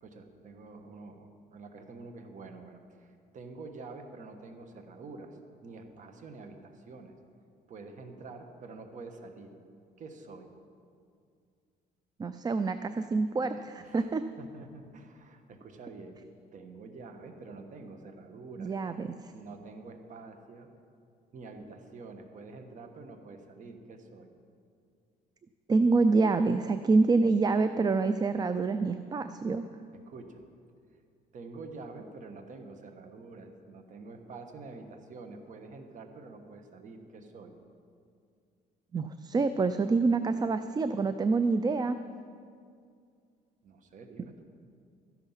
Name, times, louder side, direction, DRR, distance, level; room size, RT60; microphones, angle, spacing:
voice 1, 0.0-5.4 5.6-7.1 7.7-9.6 10.0-10.5 13.8-14.1 14.4-16.2 16.5-18.9 19.3-20.7 21.3-24.3 30.1-30.4 31.3-37.5 43.6-44.4, right 3 dB, 50° right, 6 dB, 1.4 m, -47 dB
voice 2, 12.2-14.2 18.6-19.1 25.7-29.7 38.9-42.0, right 3 dB, 25° right, 11 dB, 0.4 m, -26 dB
13.5 x 10.5 x 5.7 m, 2.3 s
cardioid pair, 110°, 17 cm